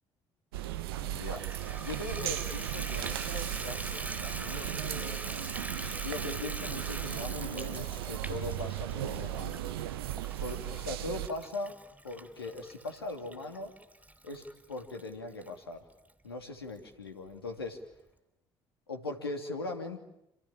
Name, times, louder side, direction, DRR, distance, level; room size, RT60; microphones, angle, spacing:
sound 1, 0.5-11.3, right 13 dB, 75° right, 1.0 m, -36 dB
voice 1, 1.0-5.2 6.0-9.6 10.4-11.8 12.0-13.7 14.2-15.8 16.2-17.8 18.9-20.0, left 2 dB, 90° left, 4 dB, 2.8 m, -40 dB
Water tap faucet / Bathtub (filling or washing), 1.1-15.5 16.1-16.2 16.7-16.8 17.1-17.2, right 1 dB, 10° right, 3.5 m, -43 dB
28.0 x 28.0 x 7.4 m, 0.83 s
figure-of-eight pair, 50°, 12 cm